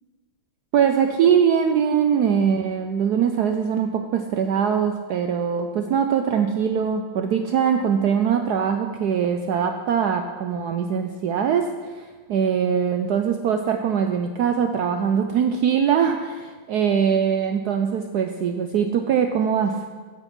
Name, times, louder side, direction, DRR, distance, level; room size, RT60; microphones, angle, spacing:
voice 1, 0.7-19.8, right 7 dB, 80° right, 6 dB, 0.9 m, -22 dB
15.5 x 5.3 x 5.9 m, 1.4 s
omnidirectional pair, 2.4 m